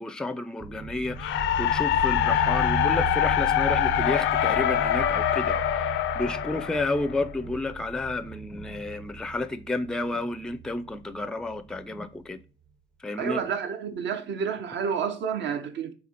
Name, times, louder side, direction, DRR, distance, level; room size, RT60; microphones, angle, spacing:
voice 1, 0.0-12.4 13.0-13.4, left 2 dB, 5° left, 0.4 m, -31 dB
sound 1, 0.6-12.0, right 3 dB, 30° right, 0.7 m, -36 dB
sound 2, 1.2-7.3, left 11 dB, 80° left, 0.4 m, -25 dB
voice 2, 13.2-15.9, right 7 dB, 65° right, 0.7 m, -30 dB
4.1 x 2.7 x 4.2 m
cardioid pair, 90°, 20 cm